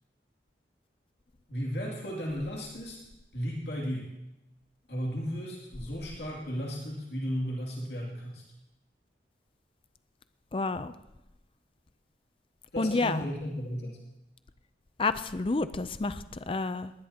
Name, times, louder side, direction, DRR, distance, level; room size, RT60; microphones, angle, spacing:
voice 1, 1.5-3.0 3.3-4.1 4.9-8.4 12.7-14.0, equal, 65° left, -3 dB, 2.7 m, -34 dB
voice 2, 10.5-10.9 12.8-13.3 15.0-16.9, left 3 dB, 30° left, 12 dB, 0.5 m, -29 dB
20.0 x 19.0 x 2.9 m, 0.92 s
head